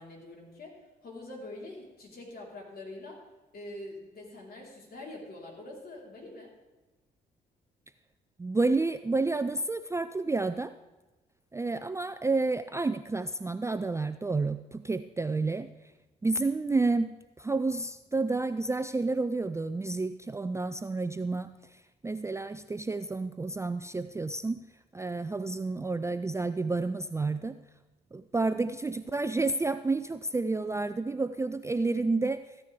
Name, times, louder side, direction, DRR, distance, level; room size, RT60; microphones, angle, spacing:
voice 1, 0.0-3.2 3.5-6.5, left 2 dB, 45° left, -2 dB, 4.1 m, -44 dB
voice 2, 8.4-10.7 11.5-15.7 16.2-24.6 24.9-27.6 28.1-32.4, right 3 dB, 15° right, 12 dB, 0.4 m, -30 dB
14.5 x 9.7 x 3.5 m, 1.1 s
hypercardioid pair, 45°, 21 cm